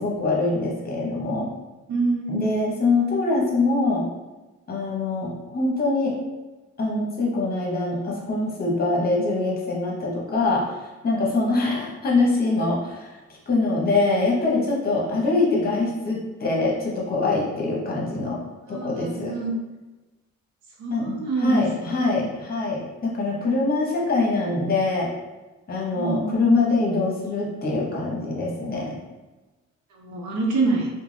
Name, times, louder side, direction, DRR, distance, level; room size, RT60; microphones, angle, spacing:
voice 1, 0.0-1.5 2.3-4.1 4.7-6.1 6.8-10.8 11.0-13.2 13.5-18.4 18.7-19.3 20.9-25.1 25.7-29.0, left 3 dB, 30° left, -3 dB, 0.9 m, -24 dB
voice 2, 1.9-2.5 18.7-19.5 20.8-22.2 25.9-26.4 29.9-30.9, right 3 dB, 70° right, -1 dB, 0.8 m, -27 dB
2.5 x 2.2 x 3.3 m, 1.2 s
cardioid pair, 90°, 30 cm